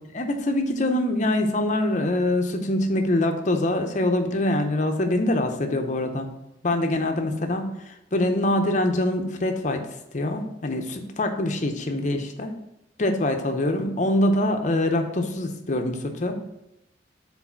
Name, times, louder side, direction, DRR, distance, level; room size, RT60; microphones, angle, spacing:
voice 1, 0.1-6.3 6.6-9.9 10.1-12.5 13.0-16.4, left 1 dB, 40° left, 5 dB, 0.7 m, -24 dB
4.8 x 3.9 x 5.7 m, 0.87 s
head